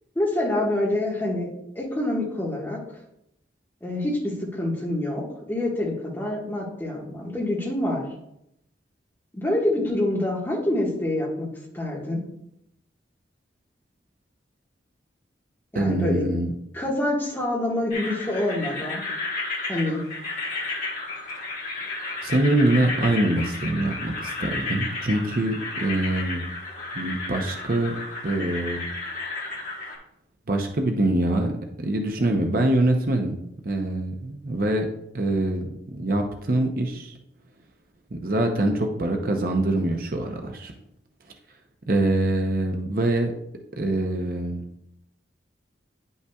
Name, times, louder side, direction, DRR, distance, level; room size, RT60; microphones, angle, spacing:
voice 1, 0.1-1.5 1.7-3.0 3.8-8.0 9.3-11.5 11.7-12.2 15.7-16.3 16.7-19.0 19.7-20.0, left 1 dB, 10° left, -4 dB, 1.4 m, -26 dB
voice 2, 15.7-16.5 22.2-26.5 26.9-28.0 28.2-28.9 30.5-34.9 35.1-37.2 38.1-40.7 41.9-43.3 43.7-44.6, right 1 dB, 50° right, 4 dB, 0.7 m, -24 dB
sound 1, 17.9-30.0, left 3 dB, 45° left, 1.5 m, -33 dB
9.8 x 5.4 x 2.3 m, 0.78 s
head